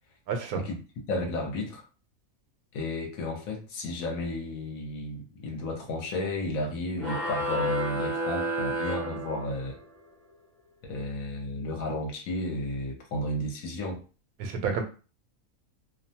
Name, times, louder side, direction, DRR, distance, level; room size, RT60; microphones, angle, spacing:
voice 1, 0.3-0.6 14.4-14.8, right 5 dB, 90° right, 5 dB, 1.1 m, -29 dB
voice 2, 1.1-1.8 2.7-9.8 10.8-14.0, left 1 dB, 80° left, 2 dB, 1.1 m, -33 dB
sound 1, 7.0-9.9, equal, 50° right, 0.9 m, -31 dB
2.6 x 2.2 x 2.7 m, 0.34 s
omnidirectional pair, 1.5 m